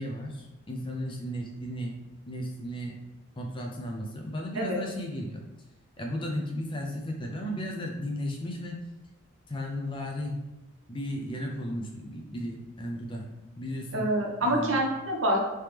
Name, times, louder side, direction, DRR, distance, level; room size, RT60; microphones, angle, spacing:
voice 1, 0.0-2.0 2.3-3.0 3.4-5.5 6.0-8.9 9.5-10.4 10.9-13.3 13.6-14.1 14.4-14.8, equal, 20° left, 1 dB, 0.5 m, -34 dB
voice 2, 13.9-15.4, right 1 dB, 60° right, 0 dB, 0.8 m, -26 dB
3.3 x 2.9 x 3.3 m, 1.0 s
head